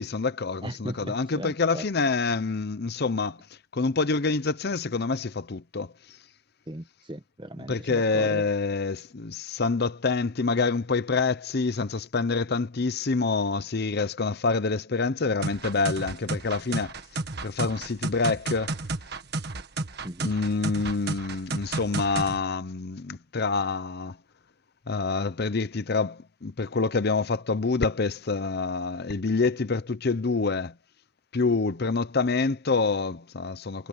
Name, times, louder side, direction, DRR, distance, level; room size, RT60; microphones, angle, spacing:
voice 1, 0.0-3.4 3.7-5.9 7.7-16.9 17.4-18.8 20.2-24.2 24.9-30.7 31.3-33.9, left 4 dB, 50° left, 0.7 m, -27 dB
voice 2, 0.6-1.8 6.7-8.5 20.0-20.3, right 1 dB, 20° right, 1.3 m, -38 dB
sound 1, 15.4-22.4, right 3 dB, 50° right, 1.7 m, -32 dB
head